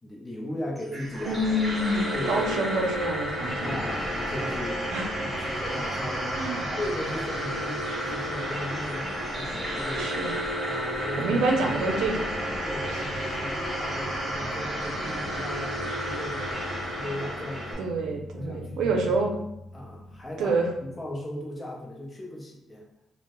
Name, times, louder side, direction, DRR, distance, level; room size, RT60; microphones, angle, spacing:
voice 1, 0.0-1.5 2.1-2.5 3.6-10.1 10.6-11.4 12.6-17.9 18.3-19.3 19.7-20.5 20.8-22.9, left 1 dB, 20° left, -2 dB, 0.7 m, -37 dB
sound 1, 0.8-17.7, equal, 25° right, 1.1 m, -31 dB
voice 2, 1.3-3.8 4.9-5.1 6.3-6.7 10.0-10.3 11.2-12.2 17.8-19.3 20.4-20.7, right 2 dB, 75° right, 2 dB, 0.4 m, -27 dB
sound 2, 12.5-21.3, left 1 dB, 65° left, 0.5 m, -45 dB
2.1 x 2.0 x 2.9 m, 0.86 s
cardioid pair, 90°, 0 cm